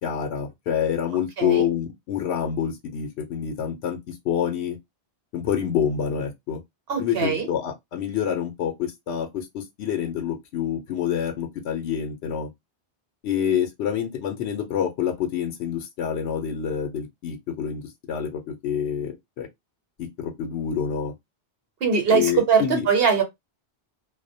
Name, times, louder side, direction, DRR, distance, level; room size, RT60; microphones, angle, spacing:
voice 1, 0.0-4.8 5.3-6.6 7.0-12.5 13.2-17.8 18.1-19.5 20.0-21.1 22.1-22.9, left 8 dB, 80° left, 0.9 m, -27 dB
voice 2, 6.9-7.5 21.8-23.2, right 6 dB, 65° right, 1.1 m, -21 dB
2.3 x 2.1 x 2.6 m
omnidirectional pair, 1.1 m